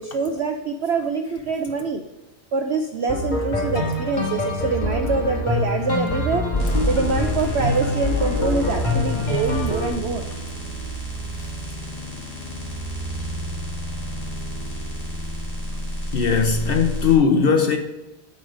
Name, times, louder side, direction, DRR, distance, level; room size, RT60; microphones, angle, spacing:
voice 1, 0.0-2.0 2.5-6.5 6.9-10.2, right 4 dB, 70° right, 0.6 m, -25 dB
sound 1, 3.1-9.9, left 2 dB, 30° left, 1.5 m, -24 dB
sound 2, 6.6-17.1, equal, 15° left, 2.7 m, -31 dB
voice 2, 16.1-17.8, left 6 dB, 85° left, 0.5 m, -18 dB
7.7 x 5.5 x 5.0 m
omnidirectional pair, 1.7 m